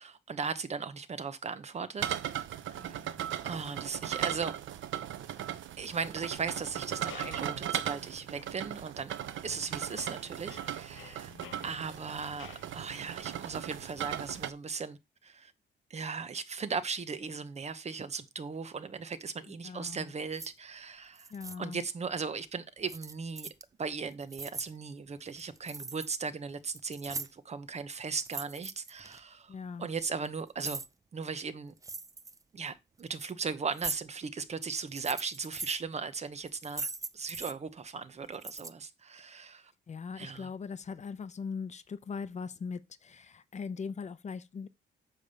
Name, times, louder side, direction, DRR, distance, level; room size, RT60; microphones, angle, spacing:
voice 1, 0.0-2.2 2.7-3.0 3.4-4.6 5.8-9.1 9.4-11.3 11.6-15.5 15.9-21.3 21.6-23.5 23.8-30.8 31.1-31.7 32.5-36.9 37.1-39.7 40.2-40.5, right 5 dB, 35° right, 1.0 m, -37 dB
sound 1, 2.0-14.5, right 11 dB, 80° right, 0.8 m, -38 dB
voice 2, 2.7-3.3 11.2-11.8 19.5-20.1 21.3-21.8 29.5-29.9 39.9-44.7, left 5 dB, 35° left, 0.8 m, -41 dB
sound 2, 7.1-7.7 8.4-8.5 9.2-9.6 9.9-12.8, left 9 dB, 90° left, 1.1 m, -52 dB
sound 3, 20.3-20.5 21.2-21.6 22.9-23.6 24.1-24.7 25.3-26.2 26.5-27.5 28.1-29.2 30.0-30.9 31.8-32.4 33.0-33.3 33.7-34.0 34.8-35.8 36.5-37.5 38.3-38.7, right 3 dB, 15° right, 0.5 m, -40 dB
9.4 x 3.5 x 6.9 m
cardioid pair, 130°, 20 cm